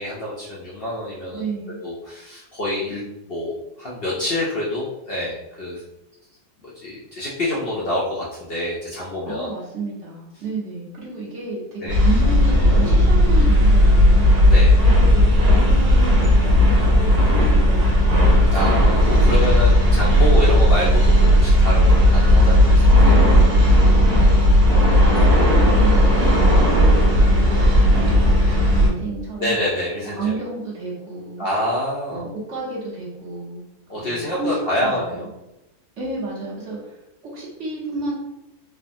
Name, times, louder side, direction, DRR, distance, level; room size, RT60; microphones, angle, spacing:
voice 1, 0.0-1.4 1.8-3.0 3.3-5.8 6.6-9.5 11.8-12.0 14.5-14.8 18.5-23.2 29.4-30.4 31.4-32.3 33.9-35.3, left 1 dB, 70° left, -6 dB, 0.5 m, -27 dB
voice 2, 1.3-1.8 9.3-14.3 15.1-18.3 23.7-29.6 30.1-31.4 32.1-33.6 33.9-34.5 34.7-35.3 36.0-38.1, right 3 dB, 55° right, -5 dB, 1.1 m, -31 dB
sound 1, 11.9-28.9, equal, 85° right, 1.3 m, -15 dB
3.3 x 2.0 x 2.6 m, 0.91 s
omnidirectional pair, 1.7 m